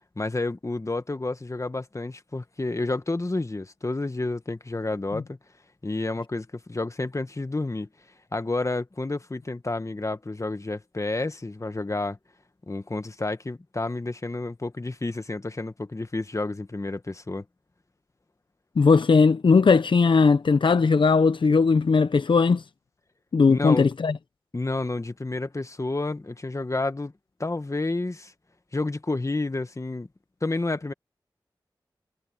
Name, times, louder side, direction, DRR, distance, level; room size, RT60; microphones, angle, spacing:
voice 1, 0.2-5.4 5.8-7.9 8.3-12.2 12.7-17.4 23.5-23.9 24.5-27.1 27.4-28.3 28.7-30.1 30.4-30.9, left 2 dB, 35° left, 1.4 m, -30 dB
voice 2, 18.8-22.6 23.3-24.2, left 4 dB, 75° left, 0.7 m, -19 dB
cardioid pair, 40°, 9 cm